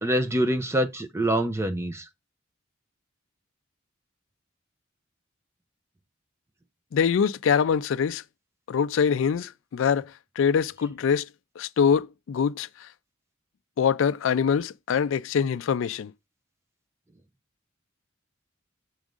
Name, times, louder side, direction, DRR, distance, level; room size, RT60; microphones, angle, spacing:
voice 1, 0.0-2.0, right 1 dB, 15° right, 0.6 m, -25 dB
voice 2, 6.9-8.2 8.7-10.1 10.4-11.3 11.6-12.9 13.8-16.1, left 7 dB, 70° left, 0.3 m, -24 dB
6.3 x 3.6 x 5.1 m
head